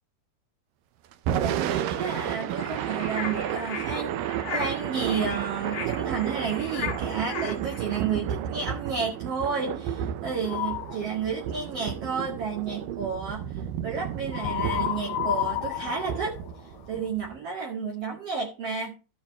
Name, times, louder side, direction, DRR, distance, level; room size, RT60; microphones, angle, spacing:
Thunder / Rain, 1.1-17.4, right 10 dB, 80° right, 2.5 m, -32 dB
voice 1, 1.4-4.2 4.5-13.4 13.8-16.4 16.9-18.9, right 5 dB, 50° right, -1 dB, 2.9 m, -31 dB
sound 1, 2.6-7.8, left 6 dB, 40° left, 1.4 m, -37 dB
sound 2, 10.5-11.0 14.3-17.1, left 12 dB, 90° left, 2.4 m, -31 dB
15.0 x 5.6 x 4.2 m, 0.31 s
omnidirectional pair, 3.8 m